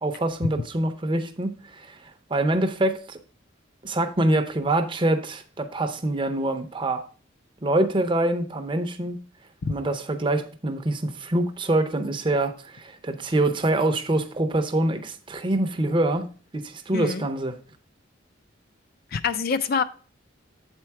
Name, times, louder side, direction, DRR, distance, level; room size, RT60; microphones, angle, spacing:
voice 1, 0.0-3.2 3.8-7.0 7.6-9.2 9.7-16.3 16.5-17.5, right 1 dB, 25° right, 0.6 m, -25 dB
voice 2, 16.9-17.2 19.1-19.8, left 5 dB, 50° left, 0.4 m, -26 dB
7.8 x 4.4 x 4.7 m
head